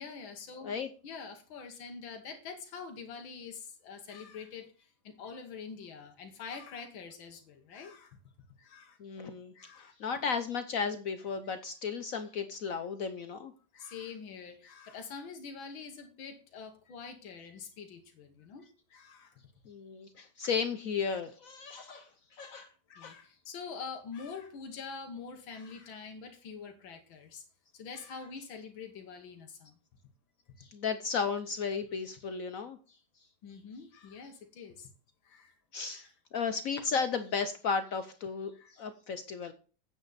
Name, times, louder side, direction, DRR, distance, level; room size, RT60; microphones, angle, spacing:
voice 1, 0.0-0.7 1.0-8.2 8.6-9.0 9.5-9.9 13.7-19.4 22.9-27.4 27.7-29.7 33.4-34.9 35.2-35.5 35.9-36.1 38.5-38.7, left 5 dB, 90° left, 4 dB, 2.0 m, -45 dB
voice 2, 9.0-13.5 19.7-22.7 23.0-23.2 30.6-32.8 35.7-39.5, left 5 dB, 65° left, 10 dB, 0.8 m, -34 dB
9.2 x 7.9 x 4.1 m, 0.37 s
omnidirectional pair, 2.1 m